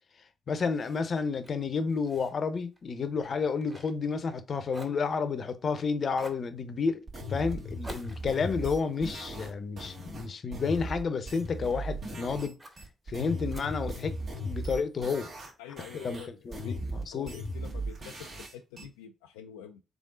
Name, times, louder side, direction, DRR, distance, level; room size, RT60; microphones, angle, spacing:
voice 1, 0.5-12.6 13.1-14.1 14.4-15.3 15.9-17.3, left 5 dB, 50° left, 0.7 m, -31 dB
Fire, 0.7-4.4 4.7-5.7 6.1-6.5 7.8-10.2 10.8-11.9 12.6-12.9 13.5-14.6, right 1 dB, 20° right, 1.9 m, -52 dB
sound 1, 7.1-12.5 12.8-15.5 15.8-18.8, equal, 55° right, 1.9 m, -37 dB
voice 2, 15.6-16.4 16.6-16.8 17.1-19.8, left 9 dB, 85° left, 0.3 m, -46 dB
3.8 x 3.5 x 3.7 m
hypercardioid pair, 45°, 0 cm